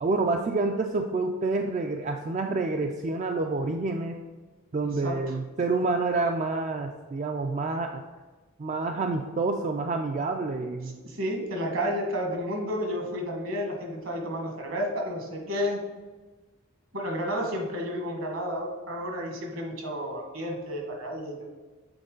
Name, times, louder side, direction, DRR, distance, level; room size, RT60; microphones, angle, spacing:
voice 1, 0.0-4.2 4.7-8.0 8.6-10.9, right 3 dB, 35° right, 4 dB, 0.3 m, -28 dB
voice 2, 5.0-5.3 10.8-15.8 16.9-21.4, equal, 65° right, 1 dB, 1.4 m, -31 dB
7.9 x 3.9 x 3.8 m, 1.3 s
head